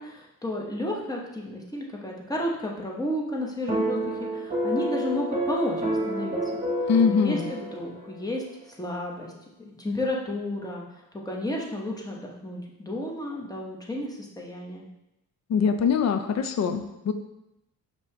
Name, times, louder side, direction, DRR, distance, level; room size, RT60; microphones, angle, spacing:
voice 1, 0.0-6.6 7.1-9.3 9.6-10.8 11.2-14.9, left 1 dB, 10° left, -2 dB, 0.9 m, -32 dB
sound 1, 3.7-8.1, equal, 25° right, 1.1 m, -29 dB
voice 2, 6.9-7.5 15.5-17.1, left 6 dB, 50° left, 8 dB, 0.5 m, -23 dB
5.2 x 2.9 x 3.2 m, 0.88 s
cardioid pair, 100°, 34 cm